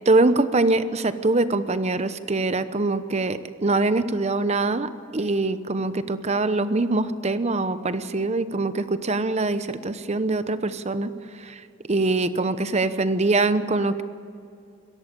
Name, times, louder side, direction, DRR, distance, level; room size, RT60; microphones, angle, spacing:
voice 1, 0.1-11.1 11.4-11.6 11.9-14.0, right 2 dB, 30° right, 12 dB, 0.8 m, -23 dB
22.0 x 16.5 x 8.5 m, 2.5 s
head